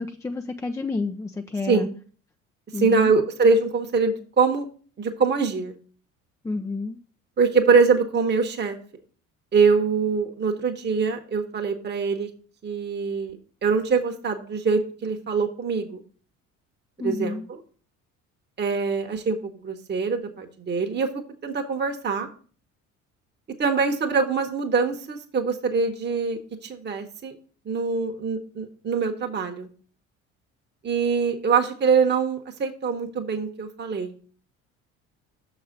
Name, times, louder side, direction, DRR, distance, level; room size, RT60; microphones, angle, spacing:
voice 1, 0.0-1.9 2.7-3.1 6.4-7.0 17.0-17.5, left 3 dB, 10° left, 5 dB, 0.4 m, -29 dB
voice 2, 2.7-4.7 5.0-5.7 7.4-8.8 9.5-12.3 12.6-13.4 13.6-16.0 17.0-17.6 18.6-22.3 23.6-27.3 27.6-29.7 30.8-34.1, right 5 dB, 25° right, 4 dB, 1.1 m, -23 dB
6.5 x 4.1 x 6.5 m, 0.41 s
figure-of-eight pair, 55°, 42 cm